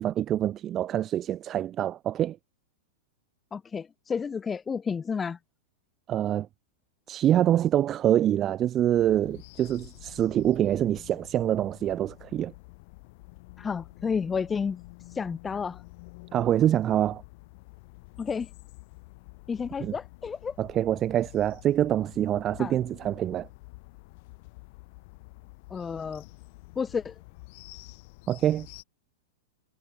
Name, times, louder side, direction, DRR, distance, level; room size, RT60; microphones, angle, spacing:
voice 1, 0.0-2.4 6.1-6.5 7.1-12.5 16.3-17.2 19.8-19.9 20.6-23.5 28.3-28.7, right 11 dB, 30° right, 0.7 m, -25 dB
voice 2, 3.5-5.4 13.6-14.8 15.1-15.8 18.2-18.5 19.5-20.6 22.6-22.7 25.7-26.2 26.8-27.1, left 6 dB, 15° left, 0.4 m, -31 dB
sound 1, 9.0-28.8, left 26 dB, 50° left, 1.3 m, -49 dB
hypercardioid pair, 115°, 0 cm